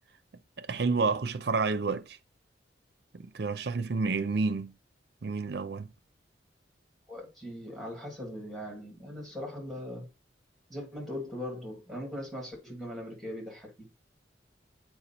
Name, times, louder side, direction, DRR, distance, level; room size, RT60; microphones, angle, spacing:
voice 1, 0.6-2.2 3.1-4.7 5.2-5.9, right 4 dB, 60° right, 0.5 m, -29 dB
voice 2, 7.1-10.1 10.7-13.9, left 1 dB, ahead, 2.1 m, -40 dB
7.8 x 4.5 x 2.9 m
head